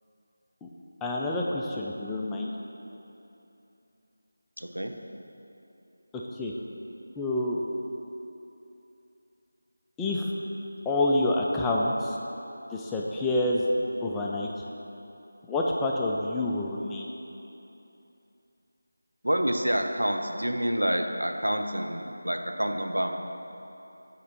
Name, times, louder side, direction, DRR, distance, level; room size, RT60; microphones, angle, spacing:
voice 1, 1.0-2.5 6.1-6.5 7.2-7.6 10.0-10.3 10.9-12.2 12.7-13.7 14.0-14.5 15.5-17.1, left 2 dB, 5° left, -3 dB, 0.3 m, -28 dB
voice 2, 4.6-4.9 19.2-23.2, equal, 80° right, 4 dB, 0.6 m, -28 dB
7.4 x 4.4 x 4.0 m, 2.9 s
figure-of-eight pair, 165°, 0 cm